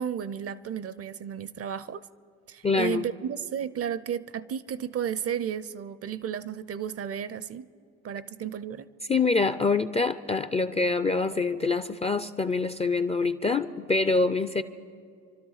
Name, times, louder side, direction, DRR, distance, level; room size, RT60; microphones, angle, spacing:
voice 1, 0.0-2.0 2.5-7.7 8.0-8.9, right 8 dB, 35° right, 0.5 m, -33 dB
voice 2, 2.6-3.1 9.1-14.6, left 4 dB, 15° left, 0.4 m, -25 dB
28.0 x 12.5 x 4.0 m
supercardioid pair, 70°, 42 cm